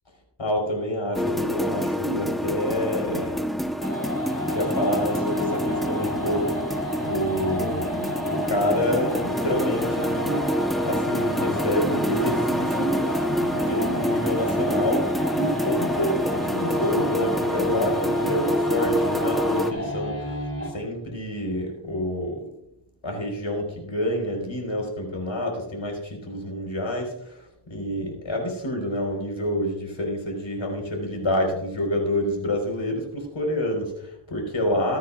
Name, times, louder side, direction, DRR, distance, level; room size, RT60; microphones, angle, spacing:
voice 1, 0.4-3.4 4.4-6.7 7.0-10.5 10.8-20.4 20.7-22.4 23.0-35.0, left 1 dB, 90° left, 1 dB, 4.8 m, -28 dB
sound 1, 1.1-19.7, equal, ahead, 1.0 m, -27 dB
sound 2, 3.8-20.8, left 1 dB, 30° left, 3.8 m, -31 dB
23.5 x 10.0 x 2.5 m, 0.80 s
wide cardioid pair, 65°, 46 cm